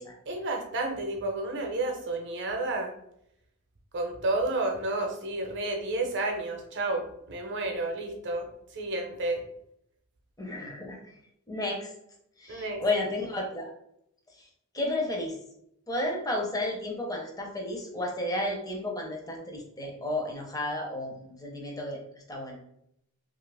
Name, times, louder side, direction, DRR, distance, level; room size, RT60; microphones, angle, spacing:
voice 1, 0.3-2.9 3.9-8.5 8.7-9.4 12.5-12.8, right 2 dB, 55° right, 3 dB, 0.6 m, -31 dB
voice 2, 10.4-11.0 11.5-11.9 12.4-13.7 14.7-15.3 15.9-22.0 22.3-22.6, left 1 dB, 15° left, 0 dB, 0.7 m, -32 dB
2.8 x 2.5 x 3.3 m, 0.75 s
head